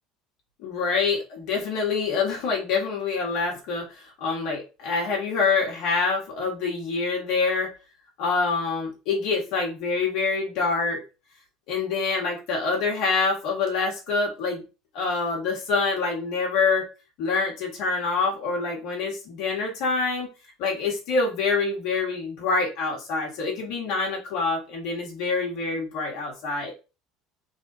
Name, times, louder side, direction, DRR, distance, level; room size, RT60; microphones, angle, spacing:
voice 1, 0.6-7.7 8.2-11.0 11.7-14.6 14.9-16.8 17.2-20.3 20.6-26.7, left 4 dB, 65° left, -2 dB, 1.4 m, -26 dB
3.5 x 2.4 x 4.0 m, 0.31 s
hypercardioid pair, 80°, 0 cm